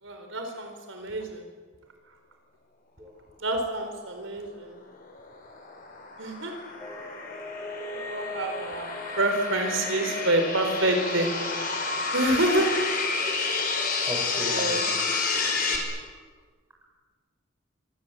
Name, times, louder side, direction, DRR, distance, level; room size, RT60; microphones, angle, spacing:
voice 1, 0.0-1.4 3.4-4.8 6.2-6.5 7.9-8.9 9.1-11.3 12.1-12.7 14.4-14.9, right 1 dB, 75° right, 4 dB, 4.6 m, -27 dB
sound 1, 4.9-15.8, left 4 dB, 45° left, 5.9 m, -30 dB
sound 2, 6.8-11.5, left 3 dB, 15° left, 3.0 m, -39 dB
voice 2, 14.1-14.8 15.3-15.8, equal, 15° right, 0 dB, 7.1 m, -37 dB
26.5 x 25.5 x 8.4 m, 1.5 s
head